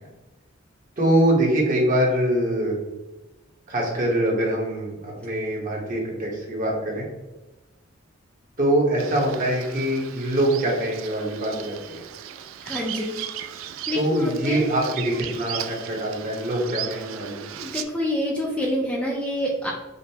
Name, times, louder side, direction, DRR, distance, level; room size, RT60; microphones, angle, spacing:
voice 1, 1.0-2.8 3.7-7.0 8.6-12.0 13.9-17.6, right 1 dB, 45° right, -2 dB, 1.1 m, -24 dB
Bird vocalization bird call bird song, 9.0-17.8, right 10 dB, 85° right, 0.3 m, -37 dB
voice 2, 12.6-13.2 13.9-14.6 17.6-19.7, equal, 5° left, -3 dB, 0.5 m, -27 dB
5.1 x 2.1 x 2.7 m, 1.1 s
head